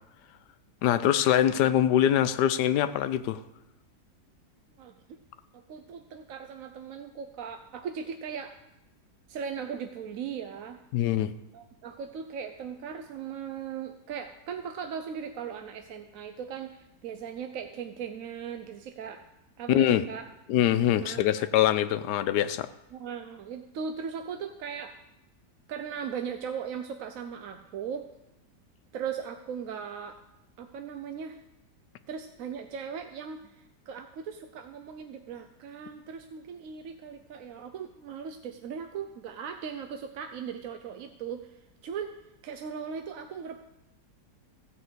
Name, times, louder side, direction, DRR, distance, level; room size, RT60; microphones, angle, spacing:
voice 1, 0.8-3.4 10.9-11.3 19.7-20.0 20.5-22.7, left 11 dB, 85° left, 11 dB, 1.2 m, -23 dB
voice 2, 4.8-5.2 5.5-8.6 9.3-10.8 11.5-19.2 19.6-20.3 21.0-21.5 22.9-24.9 25.7-28.1 28.9-30.2 30.6-31.4 32.1-42.1 42.4-43.6, right 7 dB, 65° right, 7 dB, 1.0 m, -38 dB
15.5 x 5.5 x 8.0 m, 0.95 s
omnidirectional pair, 1.8 m